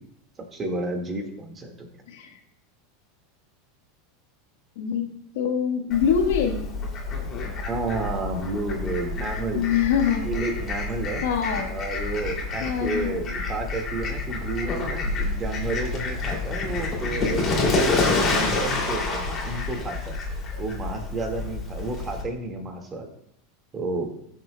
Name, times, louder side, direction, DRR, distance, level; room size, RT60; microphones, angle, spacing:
voice 1, 0.5-1.9 7.7-9.6 10.2-11.2 11.7-20.2 20.6-23.1 23.7-24.1, right 2 dB, 25° right, 3 dB, 1.8 m, -31 dB
voice 2, 2.1-2.4 4.7-6.6 9.5-10.3 11.2-11.7 12.6-13.2, left 7 dB, 80° left, 3 dB, 1.3 m, -24 dB
Fowl, 5.9-22.2, left 3 dB, 30° left, 2.6 m, -28 dB
17.0 x 6.6 x 2.2 m, 0.74 s
supercardioid pair, 115°, 0 cm